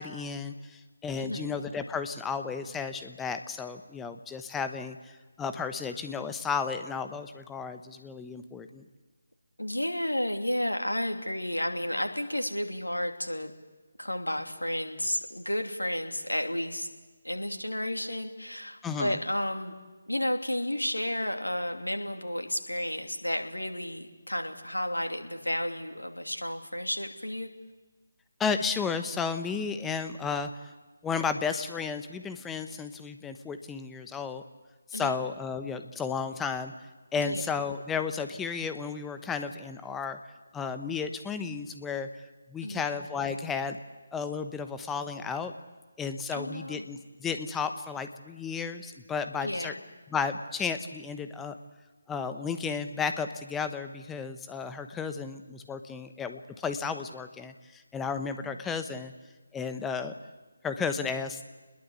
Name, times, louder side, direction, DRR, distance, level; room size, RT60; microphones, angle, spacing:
voice 1, 0.0-8.8 18.8-19.2 28.4-30.5 31.0-34.4 34.9-36.7 37.1-40.2 40.5-42.1 42.5-43.8 44.1-45.5 46.0-49.7 50.1-51.6 52.1-59.1 59.5-60.1 60.6-61.4, left 5 dB, 10° left, 9 dB, 1.1 m, -33 dB
voice 2, 1.2-1.5 9.6-13.5 14.0-16.9 17.2-19.7 20.1-27.5 34.9-35.1 37.2-37.4 42.6-42.8 46.3-46.9 49.4-49.8 58.4-58.6, left 1 dB, 85° left, 5 dB, 2.9 m, -32 dB
27.5 x 21.0 x 8.4 m, 1.3 s
figure-of-eight pair, 150°, 0 cm